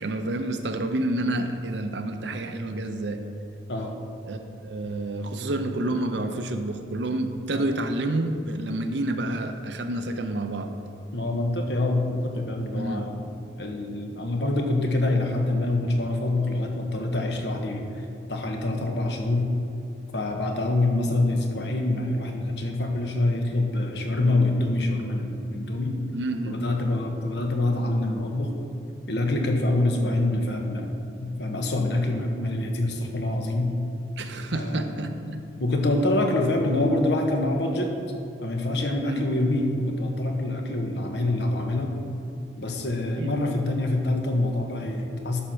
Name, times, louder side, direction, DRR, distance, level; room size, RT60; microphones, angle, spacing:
voice 1, 0.0-3.2 4.3-10.7 12.7-13.1 26.1-26.6 34.2-35.4 39.1-39.2 43.2-43.3, right 1 dB, 80° right, 7 dB, 0.8 m, -29 dB
voice 2, 11.1-13.3 13.6-19.5 20.1-25.9 26.5-28.5 29.1-33.8 34.5-35.0 35.6-37.9 38.4-42.0 42.6-45.4, left 2 dB, 75° left, 2 dB, 1.2 m, -26 dB
11.5 x 4.4 x 6.4 m, 2.8 s
head